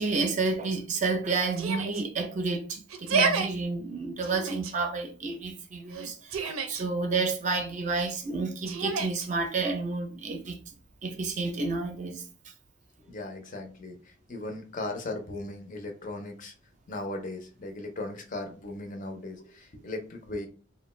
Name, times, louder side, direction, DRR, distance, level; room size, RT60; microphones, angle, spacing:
voice 1, 0.0-10.6 11.0-12.2, right 3 dB, 35° right, 0.4 m, -30 dB
Yell, 1.6-2.0 2.9-3.5 4.2-4.7 5.9-6.8 8.7-9.3, right 4 dB, 90° right, 0.5 m, -29 dB
voice 2, 13.0-16.5 16.9-20.5, left 2 dB, 40° left, 0.5 m, -37 dB
2.4 x 2.1 x 3.1 m
head